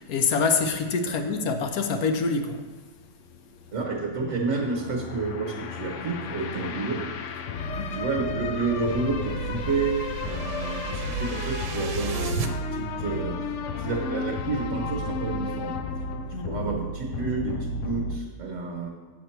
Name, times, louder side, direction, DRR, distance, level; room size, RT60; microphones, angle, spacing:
voice 1, 0.0-2.7 7.6-8.0 16.3-16.7, left 4 dB, 65° left, 1.1 m, -26 dB
sound 1, 3.0-18.2, left 3 dB, 90° left, 0.6 m, -33 dB
voice 2, 3.7-7.0 7.4-7.5 7.9-15.7 16.3-18.9, right 4 dB, 50° right, 1.4 m, -30 dB
sound 2, 8.5-12.5, right 5 dB, 70° right, 1.2 m, -35 dB
8.0 x 6.6 x 4.5 m
omnidirectional pair, 1.8 m